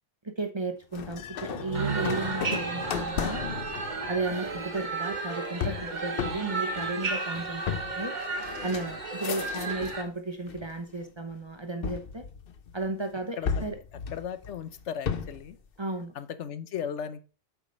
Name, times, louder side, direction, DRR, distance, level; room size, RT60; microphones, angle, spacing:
voice 1, 0.2-3.4 4.0-8.1 8.6-12.2 12.7-13.8 15.8-16.1, right 2 dB, 25° right, 6 dB, 0.9 m, -34 dB
sound 1, 0.9-10.1 10.5-11.1 11.8-12.9 13.5-15.5, left 7 dB, 55° left, 0.9 m, -35 dB
sound 2, 1.5-5.2, right 9 dB, 60° right, 0.6 m, -38 dB
sound 3, 1.7-10.0, right 3 dB, 40° right, 1.3 m, -34 dB
voice 2, 14.1-15.6 16.1-17.2, left 8 dB, 80° left, 12 dB, 1.1 m, -36 dB
8.0 x 4.9 x 5.4 m, 0.34 s
omnidirectional pair, 1.2 m